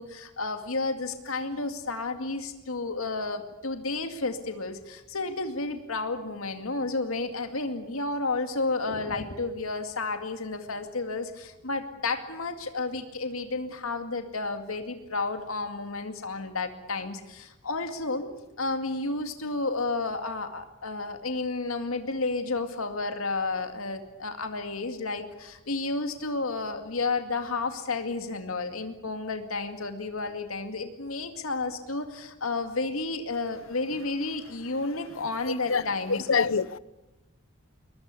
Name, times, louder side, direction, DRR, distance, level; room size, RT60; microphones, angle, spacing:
voice 1, 0.0-18.3 18.6-36.2, left 3 dB, 90° left, 2.3 m, -31 dB
voice 2, 35.5-36.8, left 5 dB, 70° left, 0.9 m, -26 dB
22.0 x 21.5 x 8.4 m
head